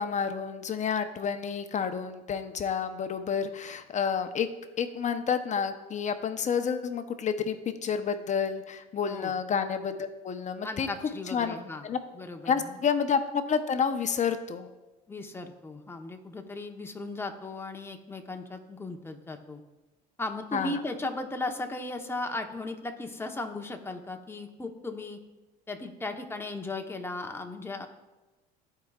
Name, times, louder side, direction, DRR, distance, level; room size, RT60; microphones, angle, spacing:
voice 1, 0.0-4.5 4.8-10.9 11.3-11.6 11.8-12.0 12.5-14.7 20.5-20.8, left 6 dB, 35° left, 8 dB, 0.8 m, -29 dB
voice 2, 10.6-11.9 12.1-12.8 15.1-19.6 20.2-25.2 25.7-27.9, left 2 dB, 10° left, 4 dB, 1.0 m, -36 dB
14.5 x 4.9 x 2.4 m, 1.1 s
supercardioid pair, 80°, 21 cm